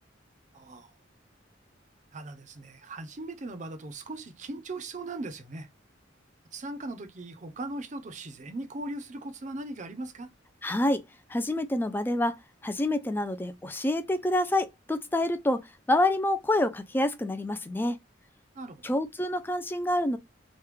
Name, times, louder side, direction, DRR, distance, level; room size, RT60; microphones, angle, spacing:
voice 1, 0.5-0.9 2.1-5.7 6.5-10.3 18.6-18.8, right 2 dB, 40° right, 0.6 m, -39 dB
voice 2, 10.6-11.0 11.3-18.0 18.8-20.2, left 1 dB, 10° left, 0.3 m, -27 dB
3.1 x 2.2 x 3.2 m
head